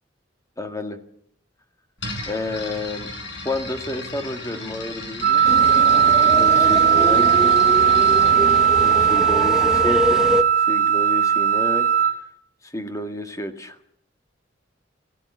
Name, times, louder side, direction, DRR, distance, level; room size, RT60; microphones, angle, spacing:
voice 1, 0.6-1.0 2.3-3.1 3.5-5.4 6.3-7.6 8.8-10.2 10.6-12.1 12.6-13.8, left 1 dB, 15° left, 7 dB, 1.8 m, -30 dB
sound 1, 2.0-9.8, left 2 dB, 70° left, 6.4 m, -36 dB
Wind instrument woodwind instrument, 5.2-12.1, right 8 dB, 45° right, 4.3 m, -17 dB
sound 2, 5.4-10.4, equal, 5° right, 1.2 m, -26 dB
21.5 x 15.0 x 8.5 m, 0.68 s
head